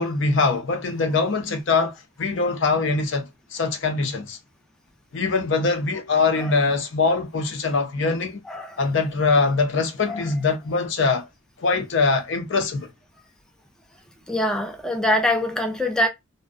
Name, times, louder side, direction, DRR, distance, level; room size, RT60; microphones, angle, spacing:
voice 1, 0.0-4.4 5.1-8.4 8.8-11.3 11.6-12.9, left 4 dB, 65° left, 0.5 m, -23 dB
voice 2, 8.5-8.8 10.1-10.2 14.3-16.1, left 1 dB, 5° left, 0.3 m, -24 dB
2.5 x 2.1 x 2.4 m
head